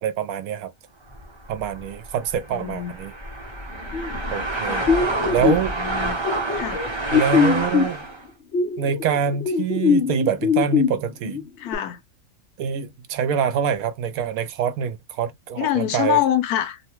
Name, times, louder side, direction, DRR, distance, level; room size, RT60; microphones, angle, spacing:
voice 1, 0.0-0.7 1.5-3.1 4.3-4.8 5.3-5.7 7.1-8.0 8.8-11.4 12.6-16.2, right 8 dB, 75° right, 1.0 m, -25 dB
sound 1, 1.1-8.2, right 2 dB, 25° right, 0.8 m, -28 dB
voice 2, 2.5-2.9 4.7-4.9 5.4-6.2 6.5-6.8 11.6-12.0 15.6-16.8, left 11 dB, 85° left, 1.2 m, -25 dB
sound 2, 3.9-4.4 4.9-5.6 6.2-7.9 8.5-10.9 11.2-11.8, left 6 dB, 55° left, 0.9 m, -21 dB
2.8 x 2.2 x 2.9 m
omnidirectional pair, 1.6 m